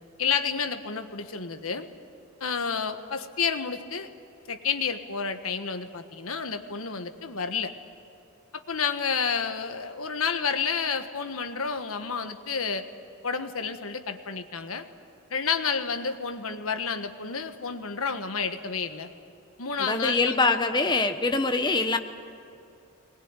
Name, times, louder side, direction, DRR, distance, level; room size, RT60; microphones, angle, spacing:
voice 1, 0.2-1.9 2.4-4.1 4.5-7.7 8.5-12.8 13.2-14.8 15.3-19.1 19.6-20.6, left 6 dB, 80° left, 8 dB, 1.5 m, -30 dB
voice 2, 19.8-22.0, left 3 dB, 20° left, 8 dB, 1.1 m, -24 dB
21.0 x 20.0 x 9.8 m, 2.6 s
head